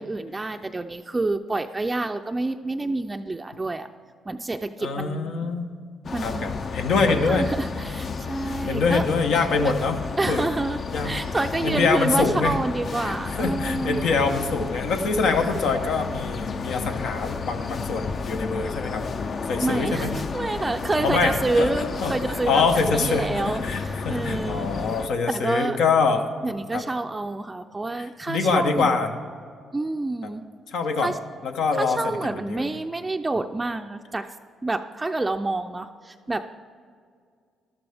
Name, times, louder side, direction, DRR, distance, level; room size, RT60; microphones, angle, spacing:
voice 1, 0.0-3.9 4.3-5.5 6.1-6.5 7.1-9.0 9.7-9.8 10.2-14.1 19.6-22.6 22.9-24.7 25.3-25.8 26.4-28.9 29.7-30.4 31.0-31.2 31.7-34.3 34.6-36.5, right 2 dB, 20° right, 6 dB, 0.4 m, -28 dB
voice 2, 4.8-5.7 6.2-7.5 8.5-10.0 10.3-10.5 10.9-11.1 11.6-12.6 13.0-19.0 19.5-20.1 21.0-26.3 26.7-26.8 27.9-29.1 30.2-30.3 30.7-31.1 31.4-32.0 32.5-32.7, left 4 dB, 80° left, 5 dB, 1.0 m, -24 dB
sound 1, 6.0-25.1, left 4 dB, 50° left, 0.6 m, -32 dB
13.0 x 11.5 x 3.5 m, 2.1 s
cardioid pair, 90°, 0 cm